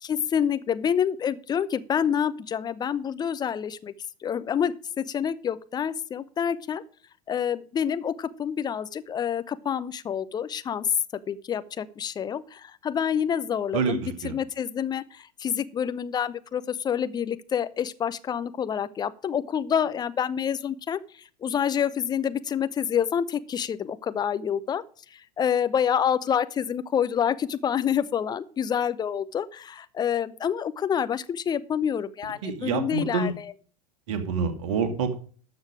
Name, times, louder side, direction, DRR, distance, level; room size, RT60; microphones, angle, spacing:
voice 1, 0.0-3.9 4.2-6.8 7.3-10.9 11.3-21.0 21.4-24.8 25.4-33.4, left 8 dB, 20° left, 14 dB, 0.8 m, -27 dB
voice 2, 13.7-14.3 32.4-33.3 34.1-35.2, right 5 dB, 55° right, 8 dB, 2.2 m, -27 dB
13.0 x 6.7 x 5.0 m, 0.43 s
figure-of-eight pair, 85°, 19 cm